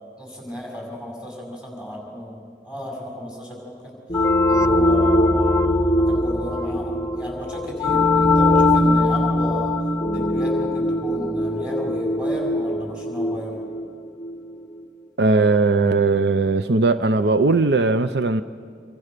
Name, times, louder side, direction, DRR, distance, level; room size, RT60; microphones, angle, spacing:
voice 1, 0.2-9.7 10.1-13.6, equal, 5° right, -2 dB, 6.1 m, -34 dB
sound 1, 4.1-14.5, left 1 dB, 20° left, 0.8 m, -21 dB
voice 2, 15.2-18.4, right 3 dB, 70° right, 11 dB, 0.6 m, -18 dB
26.5 x 25.5 x 6.8 m, 2.2 s
head